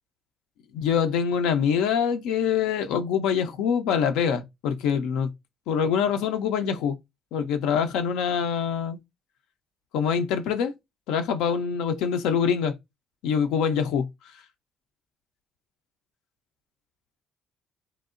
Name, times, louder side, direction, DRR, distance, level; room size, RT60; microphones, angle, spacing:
voice 1, 0.7-5.3 5.7-7.0 7.3-9.0 9.9-10.7 11.1-12.7 13.2-14.1, left 7 dB, 80° left, 0.3 m, -24 dB
2.8 x 2.0 x 2.4 m
supercardioid pair, 60°, 0 cm